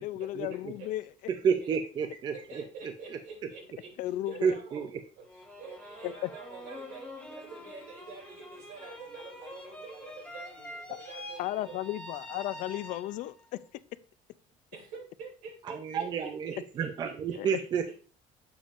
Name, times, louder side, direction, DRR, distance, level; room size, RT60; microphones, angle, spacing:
voice 1, 0.0-1.0 4.0-4.5 6.0-6.3 11.4-13.3 17.3-17.6, left 15 dB, 65° left, 16 dB, 0.4 m, -34 dB
voice 2, 1.4-2.4 2.8-2.9 4.4-4.9 15.7-17.9, right 6 dB, 30° right, 7 dB, 0.4 m, -30 dB
voice 3, 2.3-3.9 4.2-4.8 5.2-11.8 14.7-17.4, right 4 dB, 75° right, -1 dB, 2.9 m, -47 dB
sound 1, 5.2-13.4, left 1 dB, 10° left, 1.3 m, -46 dB
7.1 x 6.9 x 2.5 m, 0.38 s
cardioid pair, 175°, 14 cm